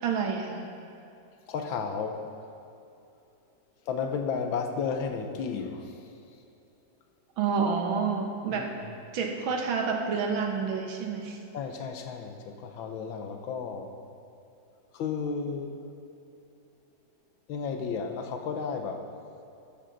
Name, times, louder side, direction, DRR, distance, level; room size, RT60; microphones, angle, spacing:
voice 1, 0.0-0.7 7.4-8.7 9.1-11.4, right 5 dB, 80° right, 3 dB, 1.9 m, -29 dB
voice 2, 1.5-2.2 3.9-6.0 8.5-8.6 11.5-13.9 14.9-15.8 17.5-19.1, left 5 dB, 80° left, 5 dB, 1.6 m, -33 dB
12.5 x 11.5 x 4.0 m, 2.7 s
omnidirectional pair, 2.2 m